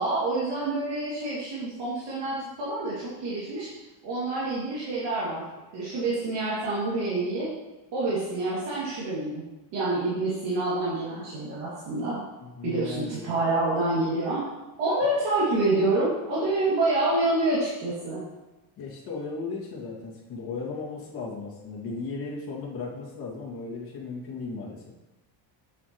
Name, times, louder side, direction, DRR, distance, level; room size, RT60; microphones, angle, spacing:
voice 1, 0.0-3.7 4.0-5.4 5.7-7.5 7.9-9.4 9.7-12.2 12.6-14.4 14.8-18.2, right 2 dB, 60° right, -9 dB, 2.7 m, -27 dB
voice 2, 12.4-13.3 18.8-24.9, left 4 dB, 50° left, -4 dB, 2.4 m, -36 dB
8.3 x 8.2 x 3.2 m, 1.0 s
cardioid pair, 165°, 46 cm